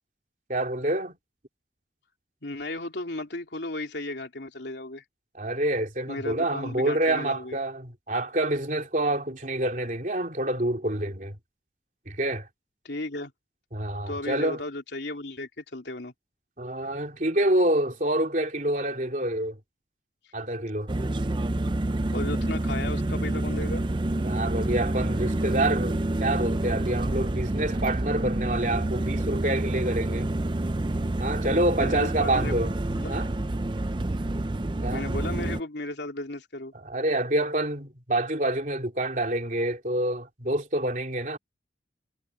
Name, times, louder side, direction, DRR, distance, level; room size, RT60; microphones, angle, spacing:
voice 1, 0.5-1.2 5.4-11.3 12.1-12.5 13.7-14.6 16.6-19.6 20.3-20.9 24.2-30.3 31.2-32.7 33.1-33.3 34.8-35.1 36.7-41.4, right 1 dB, 45° right, 3.4 m, -27 dB
voice 2, 2.4-5.0 6.1-7.6 12.8-13.3 14.1-16.1 22.1-23.8 31.8-32.6 32.9-33.2 34.9-36.7, left 2 dB, 75° left, 2.9 m, -35 dB
sound 1, 20.9-35.6, right 1 dB, 25° right, 0.5 m, -28 dB
head